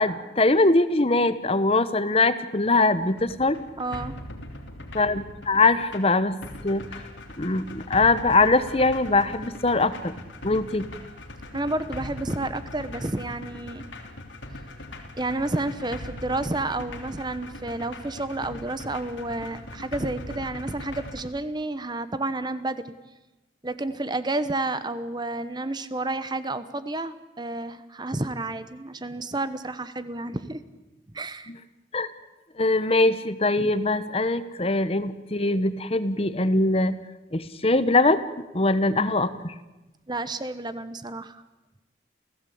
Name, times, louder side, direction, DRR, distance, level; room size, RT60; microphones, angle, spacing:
voice 1, 0.0-3.6 4.9-6.3 6.6-7.0 7.4-10.1 10.4-10.9 31.9-32.1 32.6-36.9 37.3-38.2 38.5-39.5, left 2 dB, 30° left, 13 dB, 1.1 m, -22 dB
sound 1, 3.1-21.2, left 1 dB, 85° left, 3.5 m, -40 dB
voice 2, 3.8-4.2 11.5-13.8 15.2-22.9 23.6-30.6 31.1-31.5 40.1-41.4, right 2 dB, 25° right, 13 dB, 1.0 m, -30 dB
29.0 x 16.5 x 8.7 m, 1.1 s
head